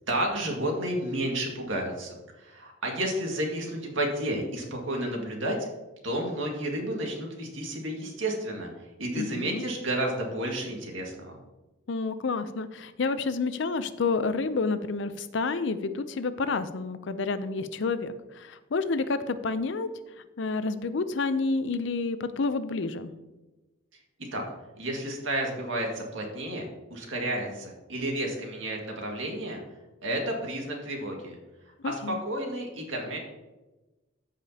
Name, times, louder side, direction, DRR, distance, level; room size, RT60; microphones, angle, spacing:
voice 1, 0.1-5.7 6.0-11.4 24.3-24.4 24.8-29.6 30.0-31.4 31.8-33.2, right 1 dB, 70° right, 0 dB, 1.9 m, -31 dB
voice 2, 9.1-9.6 11.9-18.1 18.4-19.9 20.4-23.1 31.8-32.2, left 4 dB, 60° left, 12 dB, 0.5 m, -29 dB
14.0 x 5.0 x 2.8 m, 1.1 s
head